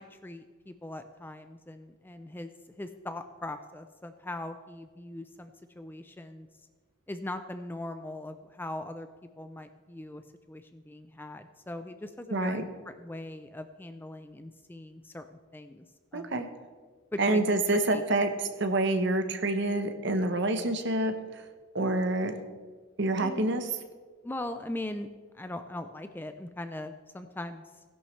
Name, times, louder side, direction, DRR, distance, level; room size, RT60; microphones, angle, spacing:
voice 1, 0.0-6.5 7.1-9.1 9.4-10.2 10.5-15.8 16.1-16.4 17.1-17.4 17.9-18.0 23.2-23.5 24.2-25.1 25.3-27.8, left 1 dB, 10° left, 8 dB, 0.3 m, -40 dB
voice 2, 12.3-12.6 16.1-16.5 17.2-21.1 21.7-22.3 23.0-23.6, right 2 dB, 55° right, 8 dB, 0.9 m, -27 dB
16.0 x 11.0 x 3.2 m, 1.5 s
head